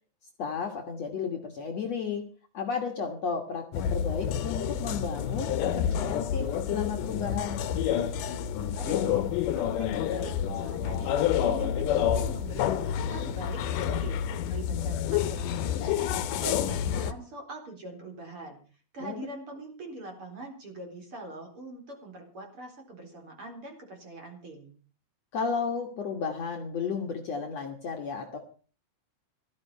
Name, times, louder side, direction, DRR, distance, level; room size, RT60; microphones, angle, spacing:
voice 1, 0.4-2.3 2.5-7.7 19.0-19.2 25.3-28.4, left 5 dB, 55° left, 3 dB, 2.3 m, -33 dB
sound 1, 3.7-17.1, left 9 dB, 70° left, 2.4 m, -29 dB
voice 2, 8.7-11.2 11.5-14.2 14.5-16.1 16.4-18.6 18.9-24.7, right 2 dB, 35° right, 2 dB, 4.5 m, -43 dB
16.5 x 13.5 x 5.5 m, 0.40 s
omnidirectional pair, 4.2 m